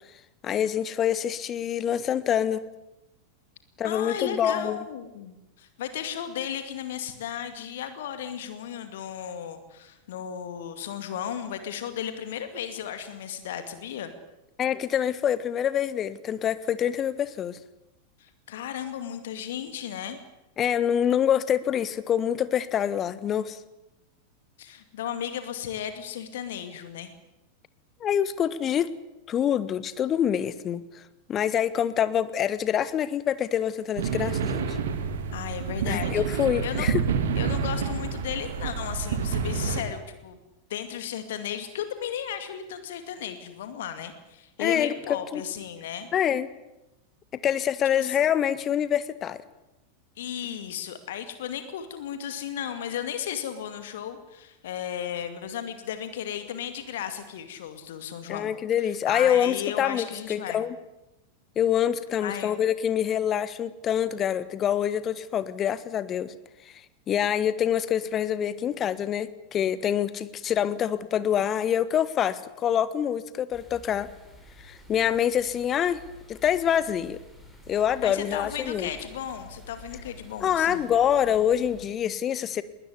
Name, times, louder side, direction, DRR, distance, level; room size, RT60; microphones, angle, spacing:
voice 1, 0.4-2.6 3.8-4.8 14.6-17.6 20.6-23.6 28.0-28.9 29.3-30.8 31.3-34.8 35.9-37.0 44.6-44.9 45.3-45.4 46.1-46.5 47.3-49.4 58.3-60.8 61.5-66.3 67.1-74.1 74.6-76.0 76.3-77.2 77.7-78.9 80.4-82.6, left 9 dB, 30° left, 15 dB, 1.4 m, -26 dB
voice 2, 3.8-14.1 18.2-20.2 24.6-27.1 35.3-36.9 37.4-40.4 40.7-46.1 48.0-48.2 50.2-58.5 58.8-60.6 62.2-62.6 78.0-80.9, left 9 dB, 55° left, 9 dB, 2.3 m, -35 dB
sound 1, 34.0-39.8, right 6 dB, 60° right, 2.7 m, -28 dB
sound 2, 73.5-81.9, left 2 dB, 5° left, 6.9 m, -49 dB
21.0 x 19.5 x 9.8 m, 0.95 s
figure-of-eight pair, 90°, 0 cm